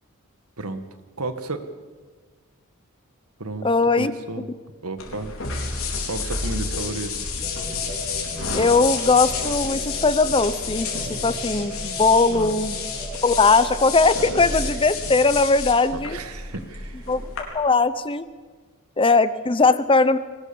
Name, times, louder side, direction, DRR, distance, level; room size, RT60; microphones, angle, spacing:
voice 1, 1.2-1.7 3.4-4.5 4.8-5.3 6.0-7.2 12.3-12.5 15.9-17.1, right 2 dB, 85° right, 9 dB, 1.8 m, -32 dB
voice 2, 3.6-4.1 8.5-12.8 13.2-16.2 17.1-17.3 17.5-18.2 19.0-20.2, left 3 dB, 25° left, 14 dB, 0.7 m, -19 dB
sound 1, 5.0-17.4, left 4 dB, 70° left, 4.4 m, -30 dB
sound 2, 7.4-14.8, right 1 dB, 35° right, 4.3 m, -37 dB
22.5 x 19.0 x 7.1 m, 1.4 s
head